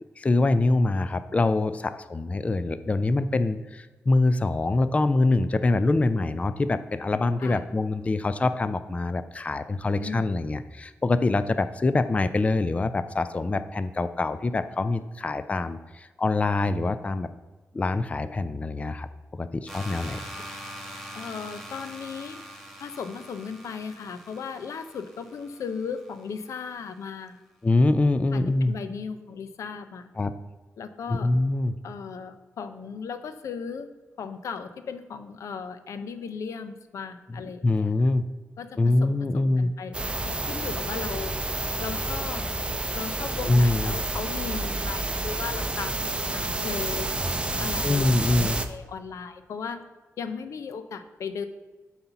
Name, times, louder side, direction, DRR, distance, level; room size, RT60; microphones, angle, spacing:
voice 1, 0.2-17.3 17.7-20.2 27.6-28.8 30.2-30.4 31.1-31.8 37.3-38.2 38.8-39.7 43.5-44.0 47.5-48.6, left 2 dB, 25° left, 12 dB, 0.4 m, -24 dB
voice 2, 10.0-10.3 21.1-22.4 22.8-27.4 28.3-30.1 30.8-31.3 31.8-33.9 34.2-37.9 38.6-41.3 41.8-42.4 42.9-47.1 47.6-49.8 50.2-51.4, left 6 dB, 85° left, 10 dB, 0.6 m, -36 dB
sound 1, 19.7-26.5, equal, ahead, 1.3 m, -43 dB
sound 2, 39.9-48.7, right 2 dB, 20° right, 0.6 m, -29 dB
7.8 x 4.2 x 5.7 m, 1.3 s
cardioid pair, 80°, 5 cm